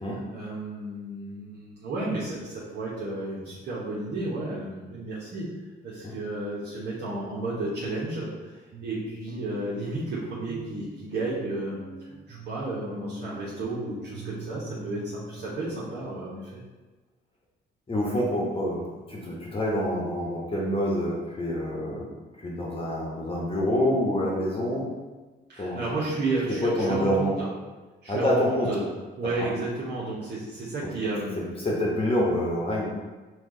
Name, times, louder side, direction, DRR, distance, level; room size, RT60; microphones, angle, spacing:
voice 1, 0.1-5.5 5.8-11.8 12.3-16.6 25.5-27.5 28.0-28.8 29.2-31.3, right 2 dB, 60° right, -8 dB, 1.0 m, -32 dB
sound 1, 7.0-7.1 7.5-7.6 8.1-8.2 8.7-15.5, right 1 dB, 35° right, 0.9 m, -42 dB
voice 2, 17.9-22.1 22.4-24.8 25.6-25.8 26.6-27.3 28.1-28.7 31.6-32.9, equal, 30° left, -3 dB, 1.0 m, -26 dB
4.5 x 2.4 x 3.8 m, 1.2 s
cardioid pair, 90°, 20 cm